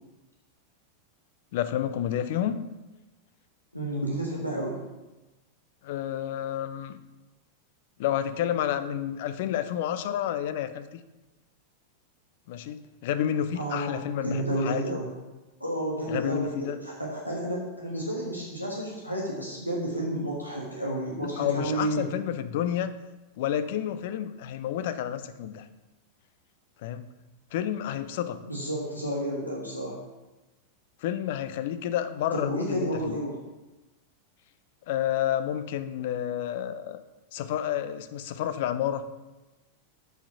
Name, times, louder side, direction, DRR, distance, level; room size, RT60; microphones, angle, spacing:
voice 1, 1.5-2.6 5.8-7.0 8.0-11.0 12.5-15.0 16.1-16.8 21.2-22.9 23.4-25.7 26.8-27.1 27.5-28.4 31.0-33.2 34.9-37.0 37.3-39.1, left 10 dB, 50° left, 11 dB, 0.6 m, -30 dB
voice 2, 3.7-4.8 13.5-15.1 15.6-22.0 28.4-30.0 32.3-33.4, right 1 dB, 90° left, -3 dB, 1.4 m, -31 dB
7.2 x 5.7 x 5.9 m, 1.1 s
figure-of-eight pair, 90°, 0 cm